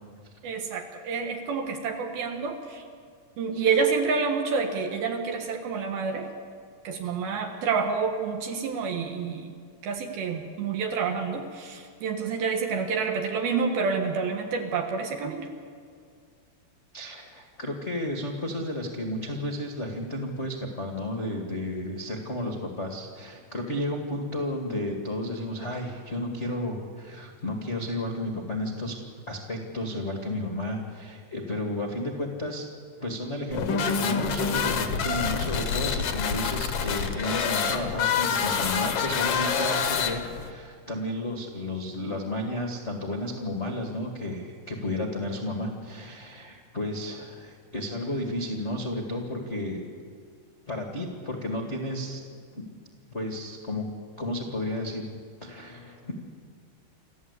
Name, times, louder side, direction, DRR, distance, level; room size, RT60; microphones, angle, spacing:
voice 1, 0.4-2.8 3.4-6.3 6.8-9.5 9.8-15.5, right 5 dB, 70° right, 3 dB, 3.1 m, -28 dB
voice 2, 16.9-28.9 29.3-32.7 33.0-49.9 50.7-52.2 52.5-52.7 53.1-53.8 54.1-55.1 55.4-56.1, left 1 dB, 40° left, 2 dB, 0.9 m, -32 dB
sound 1, 33.5-40.5, left 6 dB, 70° left, 1.5 m, -27 dB
27.5 x 14.0 x 8.3 m, 2.1 s
omnidirectional pair, 4.9 m